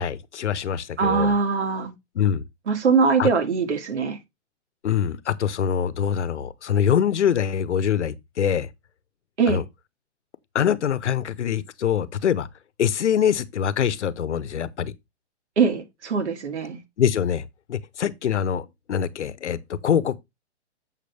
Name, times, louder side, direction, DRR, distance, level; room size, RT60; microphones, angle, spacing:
voice 1, 0.0-1.3 2.1-2.4 3.2-3.3 4.8-8.7 9.5-9.6 10.5-12.5 12.8-14.9 17.0-20.2, left 8 dB, 75° left, 1.0 m, -24 dB
voice 2, 1.0-1.9 2.7-4.2 9.4-9.6 15.6-16.8, right 5 dB, 70° right, 2.2 m, -22 dB
7.4 x 6.7 x 3.4 m
hypercardioid pair, 165°, 35 cm